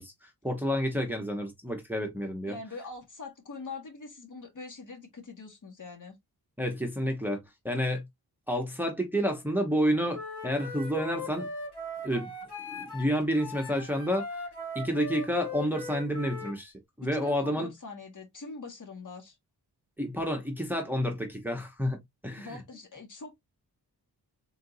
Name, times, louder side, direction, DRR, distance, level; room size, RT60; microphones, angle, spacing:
voice 1, 0.0-2.5 6.6-8.0 8.5-11.5 12.0-12.3 12.7-14.3 14.7-16.7 17.0-17.7 20.0-22.0 22.2-22.6, equal, 5° right, 1.0 m, -30 dB
voice 2, 2.5-6.2 17.1-19.4 22.4-23.3, left 3 dB, 50° left, 1.7 m, -43 dB
Wind instrument woodwind instrument, 10.1-13.1 13.4-16.6, left 2 dB, 85° left, 2.3 m, -39 dB
3.9 x 3.4 x 2.7 m
wide cardioid pair, 115°, 39 cm